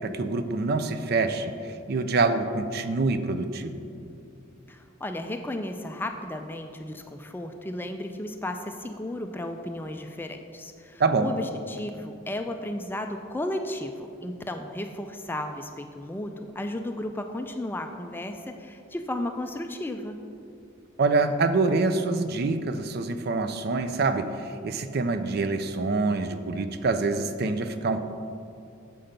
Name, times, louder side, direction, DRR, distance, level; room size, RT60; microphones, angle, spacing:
voice 1, 0.0-3.8 11.0-11.3 21.0-24.3 24.6-28.0, right 3 dB, 50° right, 10 dB, 0.4 m, -26 dB
voice 2, 4.7-20.2, left 1 dB, 10° left, 5 dB, 0.3 m, -34 dB
7.6 x 5.7 x 5.1 m, 2.5 s
head